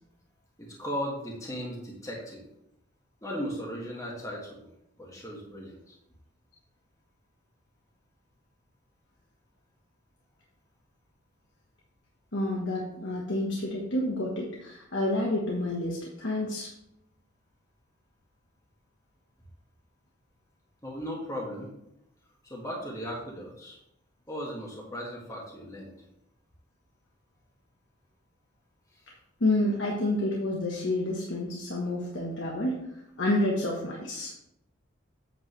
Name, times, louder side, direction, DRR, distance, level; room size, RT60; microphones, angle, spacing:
voice 1, 0.6-2.4 3.2-4.7 5.0-5.9 20.8-21.7 22.4-23.8 24.3-25.9 28.9-29.0, equal, 15° left, -3 dB, 1.6 m, -37 dB
voice 2, 12.3-16.7 29.4-34.3, left 1 dB, 65° left, -3 dB, 1.3 m, -29 dB
8.1 x 7.3 x 3.2 m, 0.81 s
head